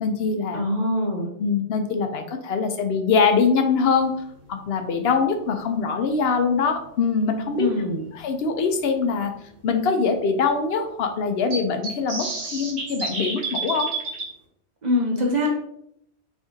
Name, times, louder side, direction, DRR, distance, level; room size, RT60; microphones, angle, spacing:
voice 1, 0.0-0.6 1.4-4.1 4.5-7.7 8.1-9.3 9.6-13.9, left 5 dB, 65° left, 6 dB, 0.7 m, -23 dB
voice 2, 0.5-1.3 7.6-8.1 14.8-15.5, left 1 dB, 45° right, 0 dB, 0.7 m, -23 dB
sound 1, 5.9-6.0 8.0-8.1 8.6-8.7 9.0-9.1 11.5-14.3, right 4 dB, 65° right, 1.2 m, -30 dB
3.6 x 3.5 x 2.6 m, 0.73 s
omnidirectional pair, 1.2 m